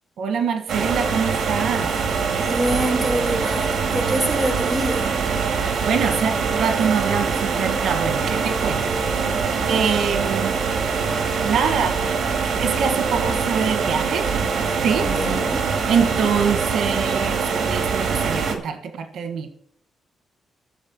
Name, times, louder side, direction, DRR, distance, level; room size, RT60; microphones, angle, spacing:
voice 1, 0.2-1.9 5.6-8.9 9.7-10.6 11.4-12.2 12.4-14.3 14.8-15.1 15.9-19.5, right 6 dB, 85° right, 7 dB, 1.4 m, -24 dB
sound 1, 0.7-18.6, right 5 dB, 65° right, 2.1 m, -23 dB
voice 2, 2.4-5.1 15.0-15.6, right 1 dB, ahead, -2 dB, 2.7 m, -25 dB
14.0 x 6.6 x 5.9 m, 0.68 s
wide cardioid pair, 160°, 0 cm